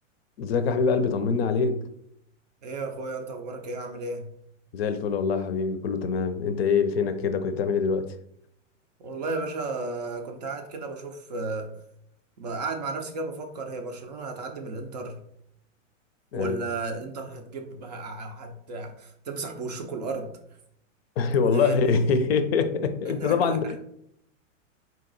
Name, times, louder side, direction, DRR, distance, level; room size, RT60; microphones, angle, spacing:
voice 1, 0.4-1.8 4.7-8.2 16.3-16.6 21.2-23.8, left 5 dB, 50° left, 0.5 m, -24 dB
voice 2, 2.6-4.3 9.0-11.7 12.4-15.2 16.3-20.3 21.5-21.8 23.1-23.7, right 3 dB, 35° right, 0.4 m, -34 dB
4.0 x 2.9 x 3.9 m
supercardioid pair, 160°, 39 cm